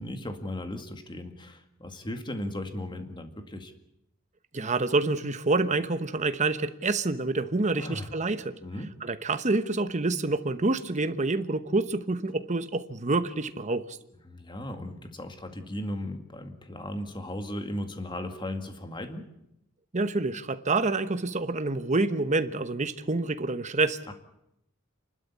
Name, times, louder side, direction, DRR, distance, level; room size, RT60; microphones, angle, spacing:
voice 1, 0.0-3.7 7.8-8.1 8.6-8.9 14.2-19.3 24.1-24.2, left 1 dB, 20° left, 2.0 m, -36 dB
voice 2, 4.5-8.6 9.0-14.0 19.9-24.1, right 3 dB, 35° right, 1.0 m, -27 dB
28.5 x 12.5 x 8.5 m
head